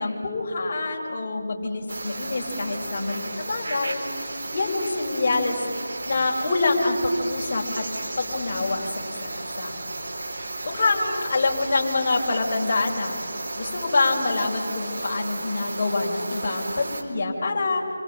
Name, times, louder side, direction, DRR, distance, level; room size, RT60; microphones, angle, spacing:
voice 1, 0.0-4.0 4.5-5.6 6.0-7.8 8.2-9.3 9.6-9.8 10.4-17.8, left 3 dB, 40° left, -1 dB, 6.0 m, -26 dB
sound 1, 1.9-17.0, right 2 dB, 50° right, 4.6 m, -34 dB
29.0 x 26.0 x 7.6 m, 2.2 s
figure-of-eight pair, 160°, 0 cm